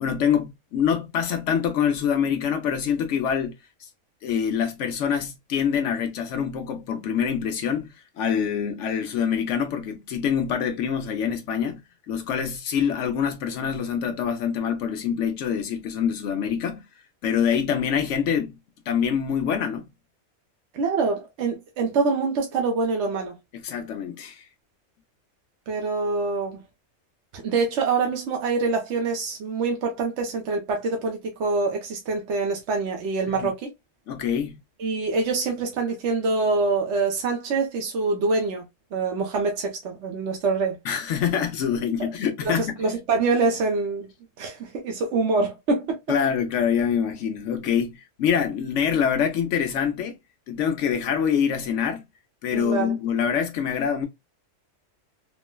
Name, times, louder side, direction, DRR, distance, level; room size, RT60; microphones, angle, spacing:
voice 1, 0.0-3.5 3.8-3.9 4.2-11.8 12.1-16.8 17.2-18.5 18.9-19.9 23.5-24.5 33.4-33.5 34.1-34.5 40.8-42.7 46.1-50.2 50.5-52.0 52.4-54.1, left 7 dB, 75° left, 0.9 m, -25 dB
voice 2, 20.7-23.4 25.7-26.6 27.3-33.7 34.8-40.8 42.4-44.1 44.4-46.0 52.5-52.9, right 4 dB, 65° right, 1.0 m, -25 dB
3.7 x 2.1 x 2.2 m
omnidirectional pair, 1.3 m